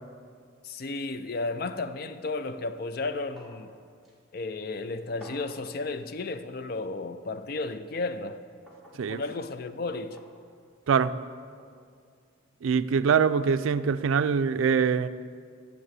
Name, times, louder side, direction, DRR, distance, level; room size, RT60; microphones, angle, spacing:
voice 1, 0.6-3.7 4.3-8.4 9.1-10.2, left 3 dB, 50° left, 11 dB, 0.4 m, -33 dB
sound 1, 3.4-3.7 4.0-4.1 5.2-5.6 6.8-6.9 8.7-9.0 10.2-10.4 11.6-11.7, right 1 dB, ahead, 1.5 m, -49 dB
voice 2, 12.6-15.1, right 6 dB, 80° right, 13 dB, 0.4 m, -23 dB
9.5 x 6.6 x 7.5 m, 2.1 s
head